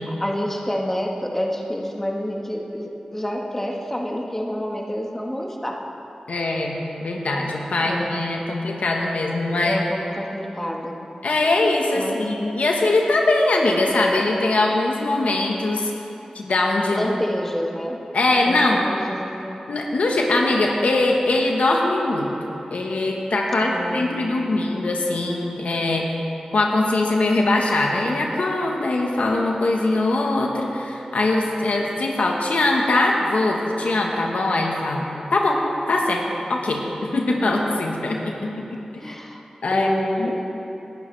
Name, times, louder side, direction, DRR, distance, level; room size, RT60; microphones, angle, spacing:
voice 1, 0.0-5.8 7.4-7.5 7.8-8.3 9.6-11.0 11.9-12.3 16.9-18.0 18.5-19.6 23.6-24.8 39.0-39.4 39.7-40.3, equal, 15° left, 0 dB, 1.5 m, -28 dB
voice 2, 6.3-9.8 11.2-15.9 16.3-17.1 18.1-18.8 19.7-22.3 22.7-26.1 26.5-35.6 35.9-36.2 36.5-36.8 37.1-39.1 39.6-39.9 40.2-40.3, left 2 dB, 80° left, 0 dB, 1.3 m, -22 dB
19.0 x 11.5 x 3.4 m, 3.0 s
wide cardioid pair, 60°, 2 cm